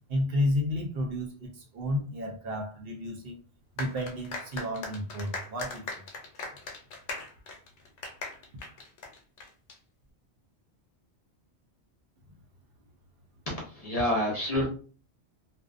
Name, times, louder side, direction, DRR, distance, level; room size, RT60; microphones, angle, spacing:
voice 1, 0.1-3.4 3.8-5.8, left 1 dB, 65° right, 2 dB, 0.8 m, -31 dB
sound 1, 3.8-9.7, left 3 dB, 80° left, 0.9 m, -39 dB
voice 2, 13.5-14.7, left 1 dB, 40° left, -2 dB, 0.7 m, -28 dB
2.5 x 2.1 x 2.4 m, 0.38 s
omnidirectional pair, 1.1 m